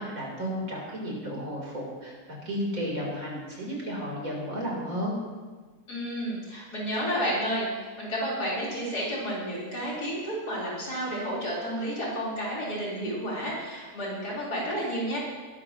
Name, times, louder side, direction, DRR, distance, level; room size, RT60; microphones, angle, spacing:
voice 1, 0.0-5.2, equal, 60° right, -3 dB, 4.2 m, -33 dB
voice 2, 5.9-15.2, equal, 90° left, -6 dB, 4.8 m, -31 dB
19.5 x 12.5 x 3.1 m, 1.4 s
omnidirectional pair, 1.7 m